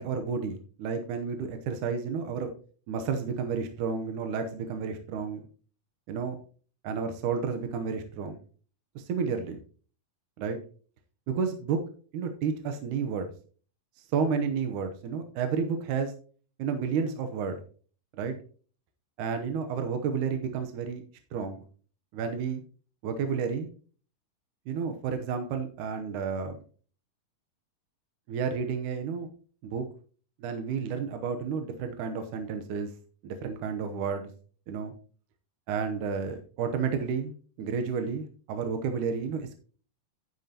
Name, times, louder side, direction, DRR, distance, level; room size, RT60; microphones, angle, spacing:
voice 1, 0.0-2.5 2.9-5.5 6.1-6.4 6.8-8.4 9.0-9.6 10.4-10.6 11.3-11.8 12.1-13.3 14.1-16.1 16.6-17.6 18.2-18.3 19.2-21.0 21.3-21.6 22.1-22.6 23.0-23.7 24.7-26.6 28.3-29.3 29.6-29.9 30.4-32.9 33.2-34.3 34.7-34.9 35.7-37.3 37.6-39.6, right 6 dB, 70° right, 6 dB, 2.2 m, -31 dB
10.5 x 9.8 x 2.8 m, 0.41 s
omnidirectional pair, 4.1 m